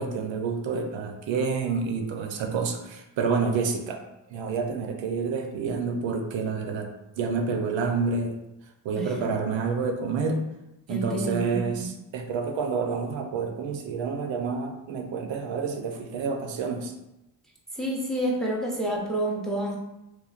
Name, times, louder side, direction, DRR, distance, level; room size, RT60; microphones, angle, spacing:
voice 1, 0.0-4.0 4.3-6.9 7.2-8.4 8.8-10.4 10.9-16.9, right 5 dB, 80° right, 4 dB, 0.5 m, -28 dB
voice 2, 10.9-11.9 17.8-19.8, right 1 dB, ahead, -1 dB, 0.5 m, -29 dB
3.1 x 2.2 x 2.4 m, 0.91 s
cardioid pair, 85°, 44 cm